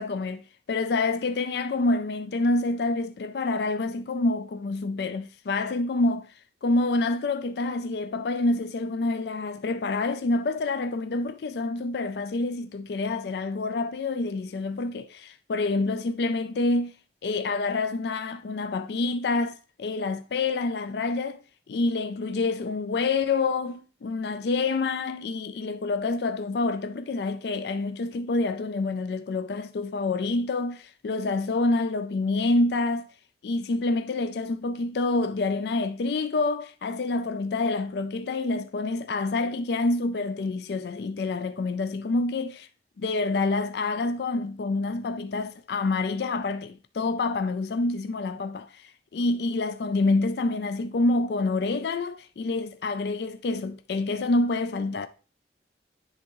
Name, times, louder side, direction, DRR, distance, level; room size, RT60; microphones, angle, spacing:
voice 1, 0.0-6.3 6.6-16.9 17.2-21.4 21.7-33.1 33.4-42.7 43.0-55.1, left 3 dB, 70° left, 0.4 m, -27 dB
10.5 x 3.5 x 3.0 m
head